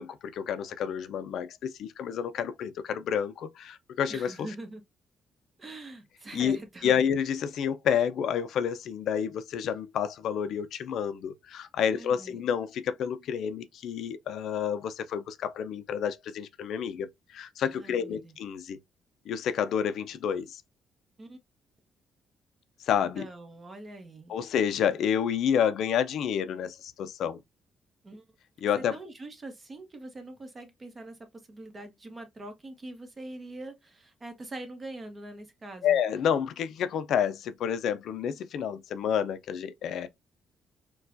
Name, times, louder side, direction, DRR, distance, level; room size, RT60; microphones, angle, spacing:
voice 1, 0.0-4.3 6.3-6.6 6.8-18.8 19.3-20.6 22.9-23.3 24.3-27.4 28.6-29.0 35.8-40.1, left 8 dB, 75° left, 0.4 m, -29 dB
voice 2, 4.1-4.8 5.6-7.0 11.9-12.4 17.7-18.4 21.2-21.4 23.1-24.4 28.0-28.2 28.8-36.0, right 2 dB, 30° right, 1.1 m, -43 dB
4.3 x 2.3 x 2.5 m
cardioid pair, 90°, 0 cm